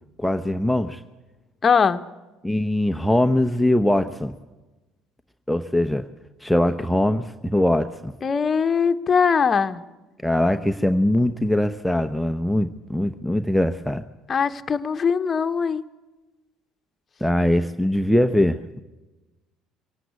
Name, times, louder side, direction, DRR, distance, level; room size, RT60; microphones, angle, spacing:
voice 1, 0.2-1.0 2.4-4.3 5.5-6.1 6.4-8.1 10.2-14.0 17.2-18.8, left 1 dB, ahead, 7 dB, 0.9 m, -22 dB
voice 2, 1.6-2.0 8.2-9.8 14.3-15.8, left 6 dB, 35° left, 9 dB, 1.1 m, -21 dB
23.5 x 17.5 x 8.2 m, 1.2 s
hypercardioid pair, 60°, 0 cm